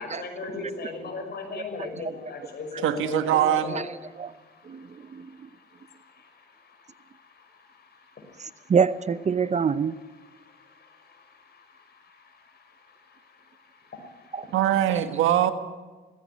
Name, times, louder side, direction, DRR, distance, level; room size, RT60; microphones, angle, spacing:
voice 1, 0.0-3.8 4.1-8.7 10.2-13.3 14.3-14.5, left 4 dB, 55° left, 4 dB, 6.3 m, -40 dB
voice 2, 0.6-0.9 1.6-1.7 3.7-3.8 4.2-4.3 4.6-5.5 8.4-10.0 14.3-14.5 15.0-15.1, right 6 dB, 35° right, 15 dB, 0.7 m, -26 dB
voice 3, 2.8-3.8 14.5-15.5, right 11 dB, 85° right, 9 dB, 1.6 m, -22 dB
18.5 x 16.5 x 9.5 m, 1.3 s
cardioid pair, 90°, 20 cm